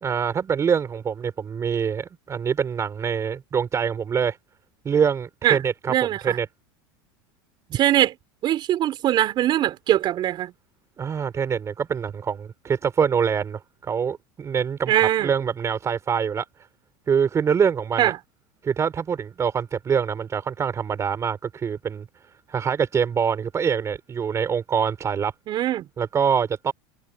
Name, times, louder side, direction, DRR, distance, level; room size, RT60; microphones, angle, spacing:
voice 1, 0.0-4.4 4.8-5.9 6.2-6.5 11.0-14.9 15.2-16.5 17.1-18.1 18.6-22.0 22.5-25.3 26.0-26.7, right 7 dB, 25° right, 4.5 m, -24 dB
voice 2, 5.9-6.4 7.7-8.1 8.4-10.5 14.9-15.3 18.0-18.1 25.5-25.8, right 12 dB, 40° right, 5.0 m, -21 dB
supercardioid pair, 120°, 12 cm